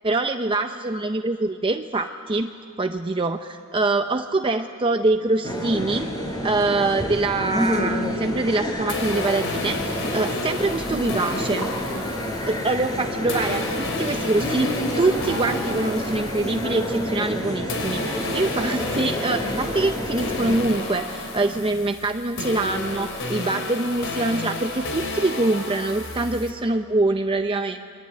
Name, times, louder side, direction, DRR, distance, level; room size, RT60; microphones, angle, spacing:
voice 1, 0.0-2.5 2.8-6.1 6.4-11.7 12.5-27.9, right 2 dB, 25° right, 6 dB, 0.6 m, -24 dB
sound 1, 5.4-20.6, equal, 20° left, 4.6 m, -28 dB
sound 2, 8.9-17.4 17.7-26.5, left 2 dB, 60° left, 3.8 m, -32 dB
28.0 x 23.0 x 8.7 m, 2.5 s
head